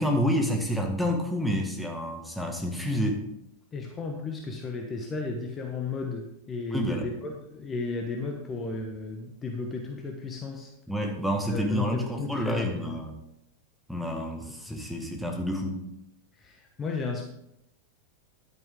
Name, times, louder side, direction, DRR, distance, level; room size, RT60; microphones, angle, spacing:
voice 1, 0.0-3.2 6.7-7.1 10.9-13.1 13.9-15.8, equal, ahead, 2 dB, 1.8 m, -29 dB
voice 2, 3.7-10.7 11.5-13.0 14.7-14.8 16.4-17.2, left 4 dB, 20° left, 2 dB, 1.3 m, -34 dB
11.0 x 9.5 x 3.8 m, 0.82 s
figure-of-eight pair, 90°, 0 cm